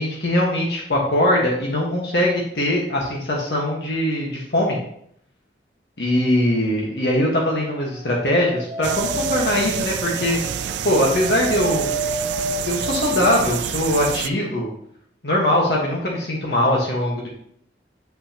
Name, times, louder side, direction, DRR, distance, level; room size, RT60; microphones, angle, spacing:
voice 1, 0.0-4.8 6.0-10.4 10.8-11.9 12.6-14.7 15.2-17.3, left 1 dB, 70° left, -3 dB, 1.4 m, -21 dB
Dog, 8.0-13.6, right 2 dB, 40° right, 1.5 m, -30 dB
beitou forest road, 8.8-14.3, right 9 dB, 80° right, 0.3 m, -28 dB
8.2 x 5.8 x 2.9 m, 0.69 s
head